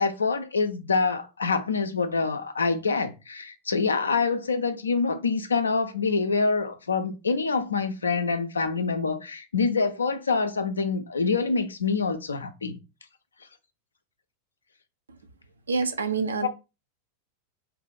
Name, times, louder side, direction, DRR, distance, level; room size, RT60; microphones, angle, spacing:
voice 1, 0.0-12.8 16.4-16.5, left 4 dB, 75° left, 0.5 m, -26 dB
voice 2, 15.7-16.5, right 4 dB, 70° right, 0.5 m, -26 dB
2.7 x 2.4 x 3.8 m
figure-of-eight pair, 90°, 0 cm